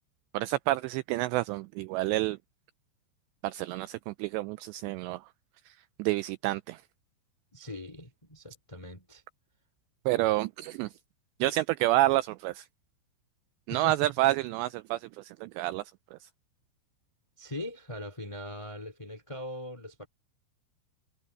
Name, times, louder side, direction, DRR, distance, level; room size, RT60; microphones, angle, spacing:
voice 1, 0.3-2.4 3.4-5.3 5.7-6.8 10.1-11.0 11.4-12.7 13.7-16.3, right 17 dB, 85° right, 2.5 m, -29 dB
voice 2, 7.5-9.2 13.7-14.1 17.4-20.1, left 1 dB, 10° left, 2.1 m, -41 dB
omnidirectional pair, 5.5 m